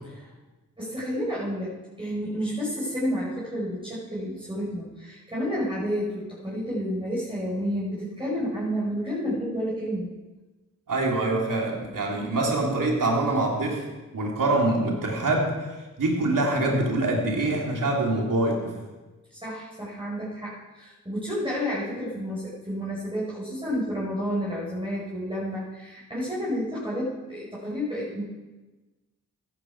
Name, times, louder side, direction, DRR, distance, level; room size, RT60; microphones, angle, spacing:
voice 1, 0.8-10.1 19.3-28.2, equal, 15° right, -7 dB, 5.1 m, -30 dB
voice 2, 10.9-13.9 14.1-15.6 16.0-18.8, right 2 dB, 75° right, -1 dB, 3.2 m, -24 dB
14.0 x 11.5 x 4.7 m, 1.2 s
cardioid pair, 40°, 33 cm